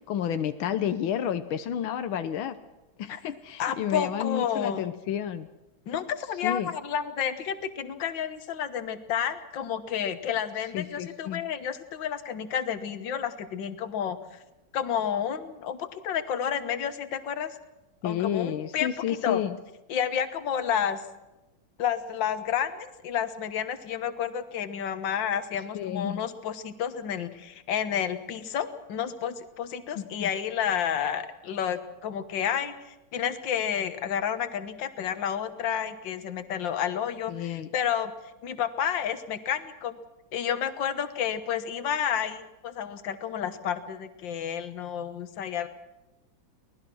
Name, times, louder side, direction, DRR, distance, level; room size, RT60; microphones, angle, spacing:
voice 1, 0.0-2.6 3.0-5.5 6.4-6.7 10.7-11.4 18.0-19.5 25.7-26.2 30.0-30.3 37.3-37.7, left 9 dB, 90° left, 10 dB, 1.7 m, -30 dB
voice 2, 3.6-4.9 5.9-14.4 14.7-17.6 18.0-19.4 19.9-21.0 21.8-38.1 38.4-39.9 40.3-45.7, left 8 dB, 70° left, 11 dB, 1.9 m, -30 dB
24.5 x 18.5 x 6.2 m, 1.0 s
omnidirectional pair, 2.2 m